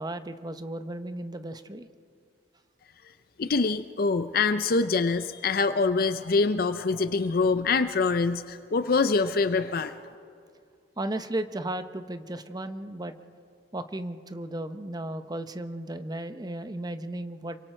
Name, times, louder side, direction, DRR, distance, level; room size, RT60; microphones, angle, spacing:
voice 1, 0.0-1.9 11.0-13.2 13.7-17.6, right 1 dB, 25° right, 10 dB, 0.8 m, -35 dB
voice 2, 3.4-9.9, left 4 dB, 55° left, 11 dB, 0.5 m, -25 dB
27.5 x 24.0 x 4.5 m, 2.3 s
head